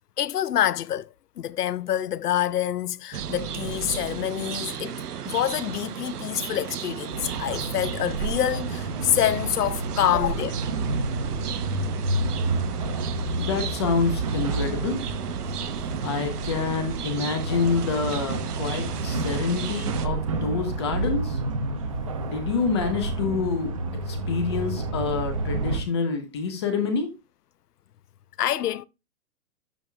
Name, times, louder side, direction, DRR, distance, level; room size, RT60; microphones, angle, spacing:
voice 1, 0.2-1.1 1.4-5.0 5.3-10.6 28.4-28.8, left 11 dB, 85° left, 0.7 m, -26 dB
sound 1, 3.1-20.1, right 8 dB, 85° right, 1.0 m, -35 dB
sound 2, 7.1-25.8, right 2 dB, 25° right, 0.6 m, -30 dB
voice 2, 13.4-15.1 16.0-21.4 22.2-23.8 24.1-27.1, left 5 dB, 20° left, 0.7 m, -27 dB
12.0 x 5.1 x 2.3 m
hypercardioid pair, 165°, 45 cm